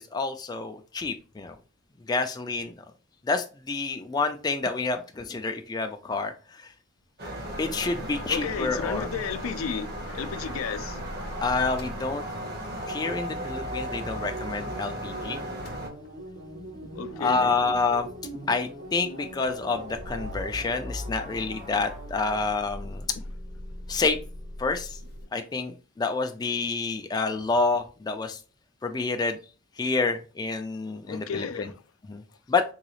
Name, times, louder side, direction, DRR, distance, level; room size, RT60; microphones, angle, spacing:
voice 1, 0.0-1.5 2.1-2.7 3.3-6.3 6.6-6.7 7.6-9.1 11.4-12.2 12.9-15.4 17.2-18.1 18.5-23.1 23.9-24.2 24.6-25.0 25.3-28.4 28.8-29.4 29.8-31.7 32.1-32.2 32.5-32.6, left 3 dB, 20° left, 0.3 m, -28 dB
sound 1, 7.2-15.9, equal, 50° right, 0.9 m, -36 dB
Motor vehicle (road) / Engine starting / Idling, 7.4-15.2 15.4-25.2, left 1 dB, 50° left, 0.7 m, -43 dB
voice 2, 8.3-11.1 16.9-17.6 31.1-31.8, left 7 dB, 90° left, 0.4 m, -33 dB
sound 2, 10.1-22.6, right 1 dB, 80° right, 1.4 m, -42 dB
3.8 x 2.3 x 3.0 m
head